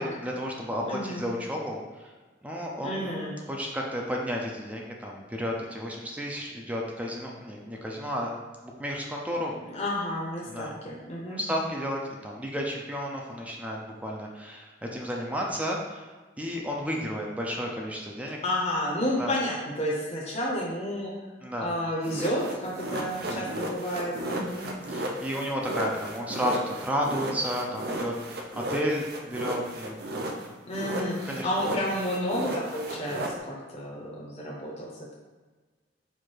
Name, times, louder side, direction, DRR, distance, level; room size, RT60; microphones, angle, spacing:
voice 1, 0.0-2.1 2.4-3.1 3.5-8.3 8.6-9.5 10.5-10.7 11.3-16.0 16.4-18.4 19.2-19.3 21.4-21.7 23.2-23.6 24.6-30.5 31.3-31.5, equal, 10° right, -1 dB, 0.4 m, -32 dB
voice 2, 0.9-1.2 2.8-3.4 9.6-11.4 18.4-21.1 21.6-24.7 30.7-34.9, equal, 35° left, -4 dB, 0.7 m, -31 dB
sound 1, 22.0-30.5 30.7-33.3, right 1 dB, 60° right, 0.6 m, -34 dB
4.6 x 2.5 x 4.5 m, 1.3 s
head